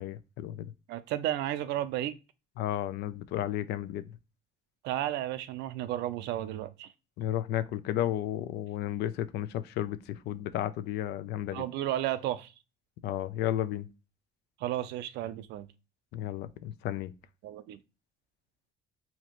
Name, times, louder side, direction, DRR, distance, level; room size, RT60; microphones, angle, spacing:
voice 1, 0.0-0.7 2.6-4.0 7.2-11.6 13.0-13.9 16.1-17.1, left 12 dB, 80° left, 0.4 m, -33 dB
voice 2, 0.9-2.2 4.8-6.9 11.5-12.5 14.6-15.7 17.4-17.8, right 13 dB, 85° right, 0.5 m, -33 dB
4.3 x 2.8 x 2.9 m
cardioid pair, 110°, 17 cm